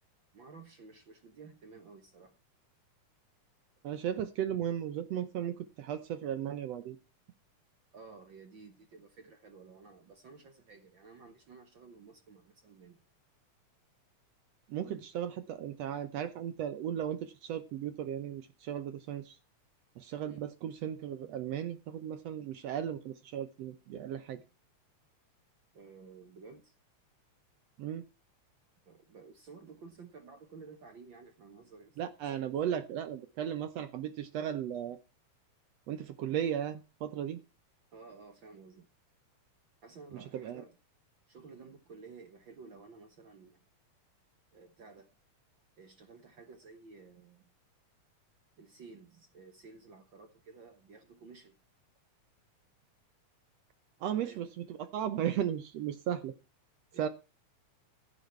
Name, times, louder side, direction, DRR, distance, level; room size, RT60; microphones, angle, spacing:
voice 1, 0.3-2.4 7.9-13.0 20.3-20.4 25.7-26.7 28.8-32.1 37.9-38.9 39.8-40.7 41.3-43.6 44.5-45.2 45.8-47.5 48.6-51.6 54.1-54.5 56.9-57.1, right 4 dB, 55° right, 1.5 m, -53 dB
voice 2, 3.8-7.0 14.7-19.4 20.0-24.4 27.8-28.0 32.0-35.0 35.9-37.4 40.3-40.6 54.0-56.3 57.0-57.1, right 10 dB, 70° right, 1.7 m, -36 dB
15.0 x 8.3 x 4.5 m
omnidirectional pair, 3.5 m